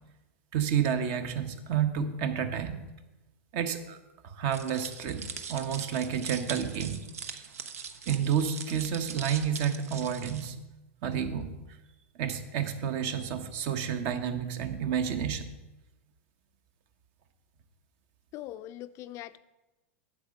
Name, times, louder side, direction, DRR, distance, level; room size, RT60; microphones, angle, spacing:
voice 1, 0.5-2.9 3.5-4.0 4.2-7.1 8.1-10.5 11.0-11.6 12.2-15.5, right 8 dB, 55° right, 9 dB, 1.0 m, -30 dB
sound 1, 4.5-10.5, right 6 dB, 90° right, 0.9 m, -41 dB
voice 2, 18.3-19.4, left 14 dB, 40° left, 13 dB, 0.4 m, -41 dB
8.5 x 7.6 x 5.2 m, 1.0 s
hypercardioid pair, 120°, 8 cm